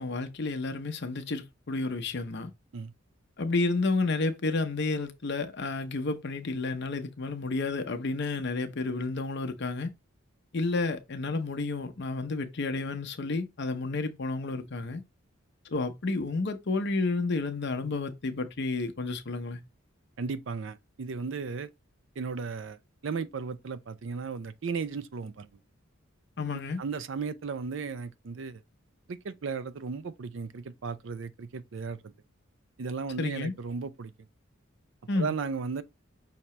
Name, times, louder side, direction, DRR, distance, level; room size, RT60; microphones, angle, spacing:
voice 1, 0.0-2.5 3.4-9.9 10.5-15.0 15.7-19.6 26.4-26.8 33.2-33.5 35.1-35.3, left 3 dB, 55° left, 0.7 m, -31 dB
voice 2, 20.2-21.7 22.2-22.8 23.0-25.5 26.5-28.6 29.1-32.0 32.8-34.1 35.1-35.8, right 5 dB, 60° right, 0.4 m, -35 dB
5.9 x 2.8 x 3.2 m
head